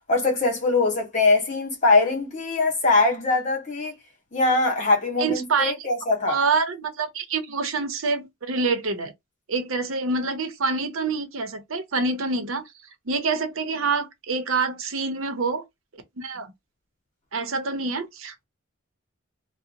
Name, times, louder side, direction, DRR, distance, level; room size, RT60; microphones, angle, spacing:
voice 1, 0.1-3.9 4.3-6.4, left 3 dB, 35° left, 1.2 m, -22 dB
voice 2, 5.2-5.8 6.3-9.1 9.5-12.6 13.1-15.6 16.2-16.5 17.3-18.4, right 4 dB, 80° right, 0.7 m, -26 dB
2.8 x 2.1 x 2.5 m
head